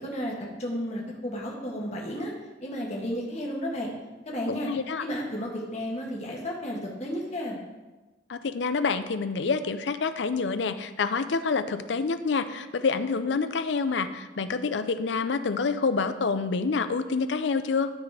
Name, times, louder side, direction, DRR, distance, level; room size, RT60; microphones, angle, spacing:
voice 1, 0.0-2.3 2.6-3.9 4.2-4.7 5.0-7.6, equal, 35° left, -2 dB, 1.6 m, -33 dB
voice 2, 4.5-5.0 8.3-17.9, left 4 dB, 70° left, 11 dB, 0.5 m, -27 dB
12.5 x 4.2 x 4.8 m, 1.2 s
head